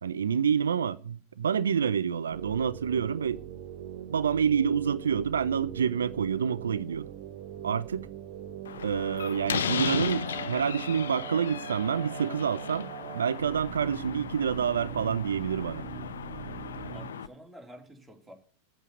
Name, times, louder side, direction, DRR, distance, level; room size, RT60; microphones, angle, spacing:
voice 1, 0.0-3.4 4.1-7.1 7.6-8.1 8.8-15.8, right 7 dB, 70° right, 0.4 m, -28 dB
sound 1, 2.3-17.1, right 10 dB, 50° right, 0.9 m, -42 dB
Slam, 8.7-17.3, left 8 dB, 65° left, 0.7 m, -36 dB
voice 2, 16.9-18.3, equal, 5° right, 3.2 m, -49 dB
8.6 x 8.2 x 8.0 m
figure-of-eight pair, 90°, 0 cm